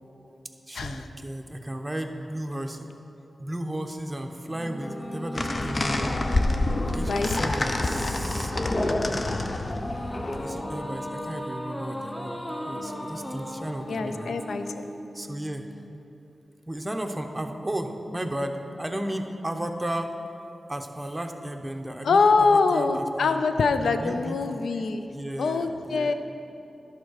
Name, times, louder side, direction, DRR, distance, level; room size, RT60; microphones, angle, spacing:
voice 1, 0.7-2.9 3.4-6.2 6.9-8.5 10.4-14.4 15.1-15.7 16.7-20.1 20.7-23.4 23.7-24.8 25.1-26.1, right 1 dB, 20° right, 5 dB, 0.8 m, -34 dB
sound 1, 4.5-15.9, equal, 20° left, 1.0 m, -37 dB
sound 2, 5.3-10.7, left 2 dB, 45° left, 0.6 m, -27 dB
voice 2, 7.0-7.5 13.9-14.9 22.0-25.0 25.4-26.1, left 4 dB, 85° left, 8 dB, 0.4 m, -24 dB
11.0 x 4.7 x 6.5 m, 2.8 s
cardioid pair, 45°, 0 cm